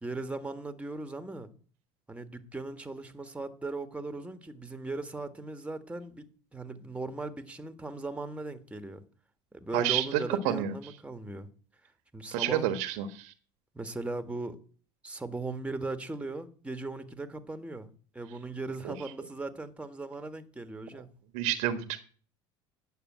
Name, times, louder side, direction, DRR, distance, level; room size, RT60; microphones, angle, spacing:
voice 1, 0.0-1.5 2.1-6.3 6.5-9.0 9.5-11.5 12.1-12.7 13.7-14.6 15.0-21.1, right 2 dB, 10° right, 1.6 m, -38 dB
voice 2, 9.7-10.7 12.3-13.3 18.8-19.0 21.3-22.0, right 11 dB, 70° right, 1.4 m, -29 dB
9.3 x 6.8 x 8.9 m
hypercardioid pair, 80°, 13 cm